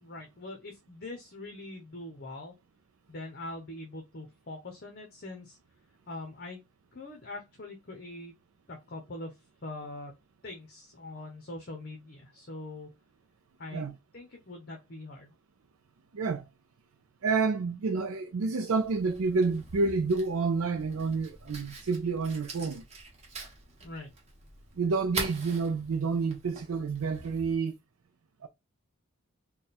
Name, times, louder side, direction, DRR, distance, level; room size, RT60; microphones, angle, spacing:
voice 1, 0.0-2.5 3.1-5.6 6.1-6.6 6.9-8.3 8.7-9.3 9.6-10.1 10.4-12.9 13.6-13.9 14.1-15.3 23.8-24.1, left 2 dB, 45° left, 0.8 m, -43 dB
voice 2, 16.1-16.5 17.2-22.8 24.8-27.7 28.4-28.5, right 4 dB, 70° right, 0.4 m, -29 dB
Fire, 18.8-27.6, right 3 dB, 30° right, 1.0 m, -43 dB
3.5 x 2.3 x 4.1 m
head